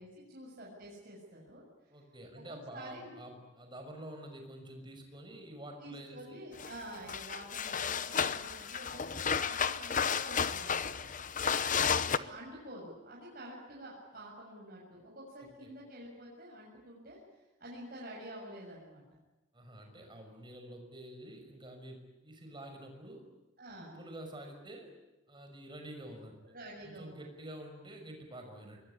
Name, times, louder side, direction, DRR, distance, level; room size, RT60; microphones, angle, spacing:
voice 1, 0.0-1.6 2.3-2.4 2.7-3.1 5.8-11.1 12.0-19.0 23.6-24.0 26.4-27.3, right 1 dB, 45° right, -4 dB, 6.9 m, -48 dB
voice 2, 1.9-6.5 15.4-15.7 19.5-23.2 23.8-24.9 25.3-26.5 26.8-28.8, right 1 dB, 25° right, 4 dB, 5.9 m, -48 dB
sound 1, 6.6-6.8 7.1-12.2, left 7 dB, 40° left, 0.9 m, -32 dB
25.5 x 22.0 x 10.0 m, 1.0 s
head